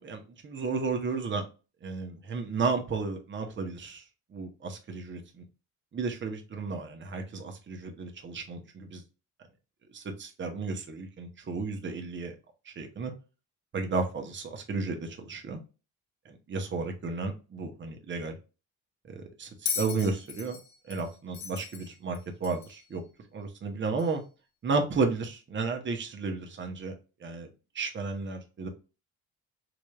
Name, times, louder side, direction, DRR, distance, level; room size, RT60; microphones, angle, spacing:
voice 1, 0.0-1.4 1.8-4.0 4.3-5.4 5.9-9.0 9.9-12.3 12.7-13.1 13.7-15.6 16.3-18.3 19.1-19.5 19.8-20.6 20.9-23.0 23.3-24.2 24.6-26.9 27.2-27.5 27.7-28.7, right 4 dB, 40° right, 0.9 m, -33 dB
Bell, 19.6-22.8 24.0-24.1, left 7 dB, 70° left, 0.8 m, -37 dB
3.9 x 3.3 x 2.3 m
cardioid pair, 90°, 30 cm